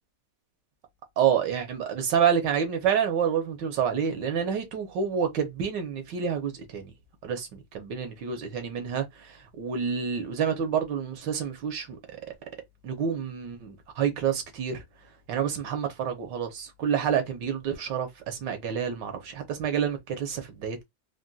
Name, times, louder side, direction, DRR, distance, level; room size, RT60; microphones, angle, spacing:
voice 1, 1.2-6.9 7.2-12.2 12.8-14.8 15.3-20.8, right 8 dB, 70° right, 1.4 m, -28 dB
3.9 x 2.1 x 2.2 m
omnidirectional pair, 2.1 m